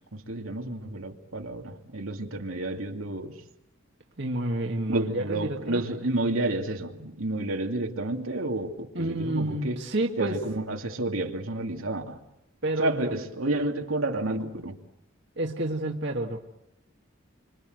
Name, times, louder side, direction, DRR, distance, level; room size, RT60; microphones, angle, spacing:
voice 1, 0.1-3.4 4.9-9.8 10.2-12.2 12.8-14.8, right 2 dB, 80° right, 3 dB, 2.6 m, -30 dB
voice 2, 4.2-6.0 8.9-10.4 12.6-13.1 15.4-16.4, right 1 dB, 55° right, 2 dB, 1.9 m, -29 dB
27.0 x 26.0 x 8.0 m, 0.84 s
head